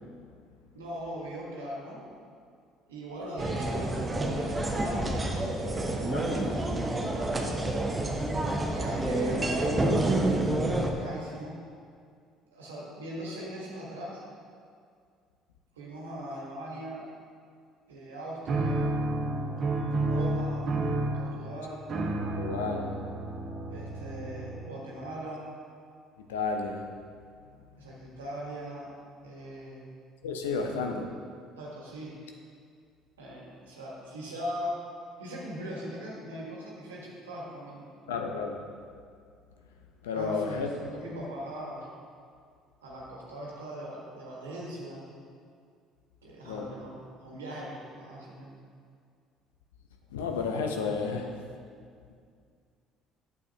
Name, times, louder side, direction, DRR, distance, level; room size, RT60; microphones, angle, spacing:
voice 1, 0.7-2.0 2.9-7.7 8.6-10.2 10.9-11.6 12.5-14.2 15.7-17.0 17.9-18.9 20.0-20.7 21.1-21.9 23.7-25.4 27.8-28.9 29.2-29.9 30.6-31.0 31.6-32.2 33.2-34.8 35.2-37.9 40.1-41.9 42.8-45.1 46.2-48.5, right 1 dB, 90° right, -4 dB, 1.3 m, -40 dB
sound 1, 3.4-10.9, right 1 dB, 20° right, 0.9 m, -28 dB
sound 2, 18.5-24.9, right 2 dB, 50° right, 1.1 m, -31 dB
voice 2, 22.4-22.9 26.3-26.8 30.2-31.1 38.1-38.6 40.0-40.9 46.4-46.7 50.1-51.3, left 4 dB, 85° left, 3 dB, 0.7 m, -31 dB
8.8 x 6.9 x 2.8 m, 2.2 s
hypercardioid pair, 60°, 0 cm